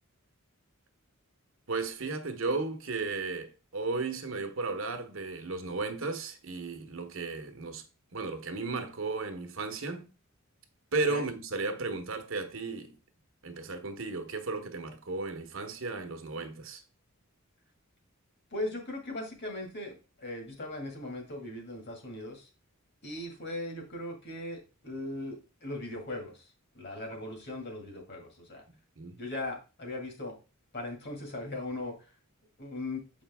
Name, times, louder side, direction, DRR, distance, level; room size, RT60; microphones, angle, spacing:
voice 1, 1.7-7.8 8.1-10.1 10.9-13.0 13.4-16.8 29.0-29.2, right 3 dB, 60° right, 1.0 m, -34 dB
voice 2, 18.5-22.5 23.0-26.5 26.7-28.6 29.2-30.4 30.7-31.9 32.6-33.0, left 2 dB, 50° left, 2.0 m, -39 dB
6.8 x 5.1 x 3.5 m
head